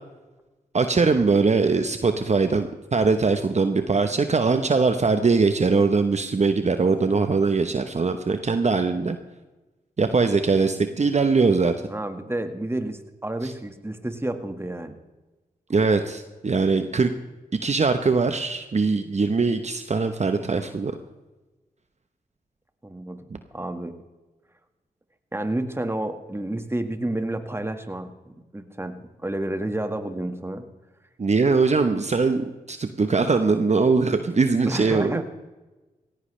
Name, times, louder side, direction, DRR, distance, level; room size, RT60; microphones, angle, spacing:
voice 1, 0.7-9.2 10.0-11.7 15.7-17.1 17.6-20.9 31.2-35.2, right 4 dB, 45° right, 8 dB, 1.0 m, -21 dB
voice 2, 11.9-15.0 22.8-23.2 23.5-24.0 25.3-30.7 34.6-35.2, right 1 dB, 15° right, 7 dB, 1.7 m, -30 dB
17.0 x 15.5 x 3.3 m, 1.1 s
cardioid pair, 45°, 16 cm